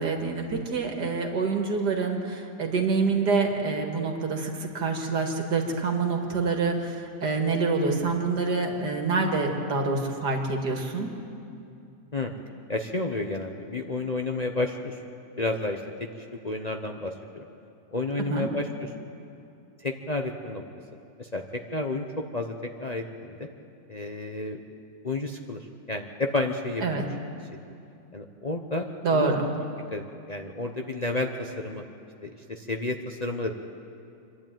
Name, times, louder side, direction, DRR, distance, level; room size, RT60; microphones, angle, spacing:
voice 1, 0.0-11.2 18.3-18.5 26.8-27.0 29.0-29.4, right 4 dB, 85° right, 2 dB, 2.5 m, -26 dB
voice 2, 12.7-15.0 15.4-17.4 17.9-18.9 19.8-20.6 21.2-21.4 21.7-22.0 22.3-22.6 22.8-23.5 23.9-24.6 25.0-27.1 28.1-29.4 29.9-30.0 30.3-31.8 32.2-33.5, left 2 dB, 35° left, 2 dB, 0.7 m, -31 dB
26.0 x 11.5 x 9.1 m, 2.6 s
omnidirectional pair, 1.7 m